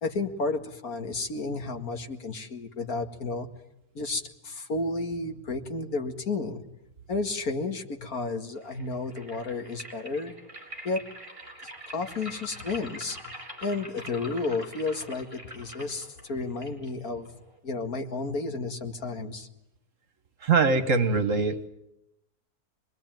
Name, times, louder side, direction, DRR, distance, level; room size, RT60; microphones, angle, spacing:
voice 1, 0.0-3.5 3.9-6.6 7.1-10.4 10.8-11.0 11.9-13.3 13.6-17.3 17.6-19.5, left 3 dB, 65° left, 5 dB, 2.5 m, -32 dB
sound 1, 8.6-17.6, equal, 20° right, 4.8 m, -44 dB
voice 2, 20.4-21.7, right 4 dB, 55° right, 9 dB, 1.7 m, -23 dB
26.0 x 21.0 x 9.2 m, 0.88 s
omnidirectional pair, 1.7 m